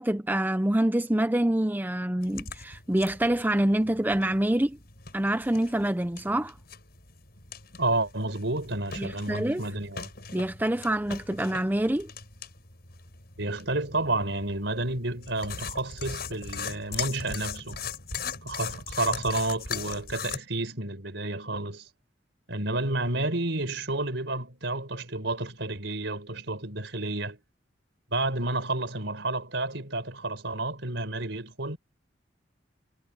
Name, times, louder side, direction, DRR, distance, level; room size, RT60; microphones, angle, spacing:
voice 1, 0.0-4.8 5.1-6.6 9.0-9.6 10.3-12.1, right 1 dB, 10° right, 0.6 m, -26 dB
sound 1, 2.2-20.4, left 6 dB, 55° left, 7.7 m, -40 dB
voice 2, 7.8-10.1 13.4-17.9 18.4-21.9 22.5-27.4 28.1-31.8, right 2 dB, 70° right, 4.7 m, -30 dB
head